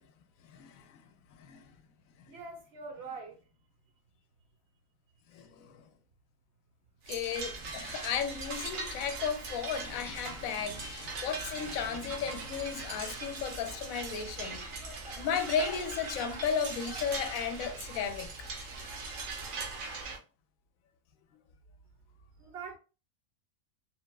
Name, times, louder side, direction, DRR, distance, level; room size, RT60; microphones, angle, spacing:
voice 1, 0.5-1.0 1.4-1.7 2.3-2.4 5.3-5.9 7.1-14.6 15.2-18.5 19.9-20.1, left 7 dB, 80° left, 1.0 m, -35 dB
voice 2, 2.3-3.4 22.4-22.8, right 4 dB, 60° right, 0.8 m, -43 dB
sound 1, 7.0-20.2, right 3 dB, 75° right, 1.2 m, -40 dB
Female speech woman speaking / Yell, 12.2-12.7 13.0-13.8 14.5-17.3, left 1 dB, ahead, 0.6 m, -52 dB
3.9 x 2.2 x 2.2 m
omnidirectional pair, 1.4 m